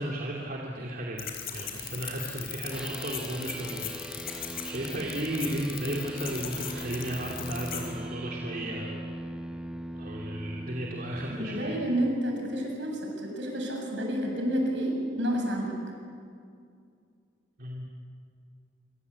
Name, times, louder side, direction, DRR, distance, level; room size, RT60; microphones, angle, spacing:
voice 1, 0.0-9.1 10.0-11.8 17.6-17.9, right 1 dB, 50° right, -2 dB, 2.9 m, -34 dB
sound 1, 1.2-7.9, left 9 dB, 55° left, 4.3 m, -39 dB
sound 2, 2.7-12.1, equal, 5° right, 1.0 m, -40 dB
voice 2, 11.3-15.7, equal, 70° right, 1 dB, 7.1 m, -30 dB
27.0 x 24.0 x 8.4 m, 2.3 s
head